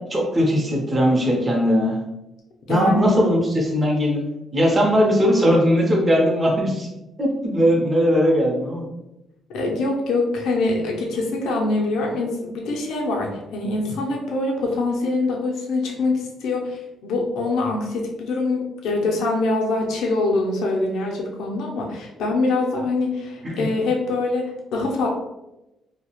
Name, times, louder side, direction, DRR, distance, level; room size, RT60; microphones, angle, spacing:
voice 1, 0.0-2.0 2.7-4.2 4.5-6.9 7.2-8.8 23.4-23.7, equal, 25° right, -2 dB, 0.6 m, -19 dB
voice 2, 2.7-3.2 9.5-25.1, left 2 dB, 80° left, -1 dB, 0.5 m, -24 dB
2.3 x 2.0 x 2.9 m, 0.93 s
cardioid pair, 90°, 0 cm